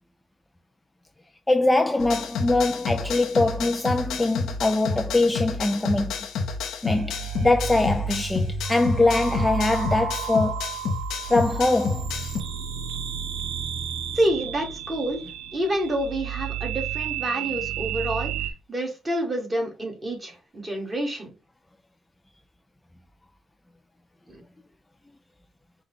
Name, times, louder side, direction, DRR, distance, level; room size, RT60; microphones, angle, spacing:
voice 1, 1.5-6.1 6.8-10.8 11.3-12.1, left 2 dB, 15° left, 0.4 m, -23 dB
sound 1, 2.0-12.4, left 4 dB, 85° left, 0.7 m, -30 dB
sound 2, 6.9-18.5, right 9 dB, 85° right, 0.5 m, -32 dB
voice 2, 14.1-15.2 15.5-18.3 18.7-21.3 24.3-24.4, right 1 dB, 25° right, 1.8 m, -28 dB
5.3 x 2.3 x 3.6 m
cardioid pair, 90°, 0 cm